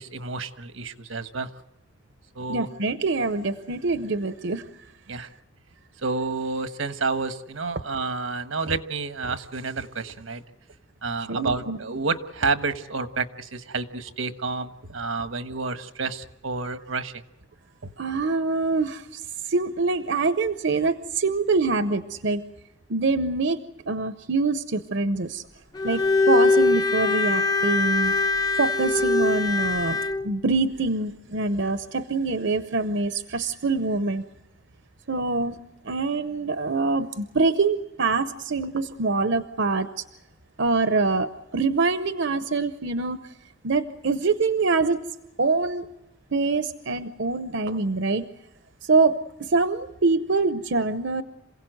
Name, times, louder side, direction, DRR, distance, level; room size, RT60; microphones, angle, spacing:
voice 1, 0.0-1.5 2.3-2.7 5.1-5.3 6.0-10.4 11.0-17.2 17.8-17.9, right 4 dB, 90° right, 10 dB, 1.3 m, -29 dB
voice 2, 2.5-4.6 11.3-11.8 18.0-22.4 22.9-23.6 23.9-25.4 25.8-28.1 28.6-30.0 30.2-34.2 35.1-35.6 35.8-40.0 40.6-43.2 43.6-45.0 45.4-45.9 46.3-48.3 48.8-49.1 49.4-51.2, right 3 dB, 60° right, 11 dB, 0.7 m, -24 dB
Bowed string instrument, 25.7-30.2, left 3 dB, 20° left, 0.7 m, -22 dB
27.5 x 17.0 x 7.9 m, 1.0 s
head